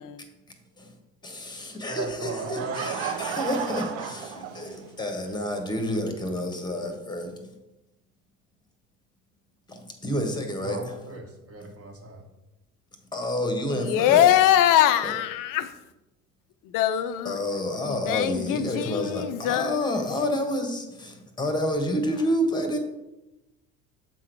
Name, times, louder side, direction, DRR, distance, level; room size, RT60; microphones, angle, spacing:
voice 1, 1.2-7.6 9.7-11.0 13.1-14.3 15.0-15.1 17.2-22.8, left 1 dB, 10° left, 1.3 m, -29 dB
voice 2, 1.9-2.9 10.6-12.2, right 2 dB, 30° right, 1.8 m, -37 dB
Laughter / Crowd, 2.2-5.1, right 8 dB, 60° right, 0.8 m, -33 dB
voice 3, 13.7-15.7 16.7-17.4 17.8-20.1, left 11 dB, 45° left, 0.6 m, -22 dB
7.6 x 3.8 x 4.6 m
hypercardioid pair, 65°, 45 cm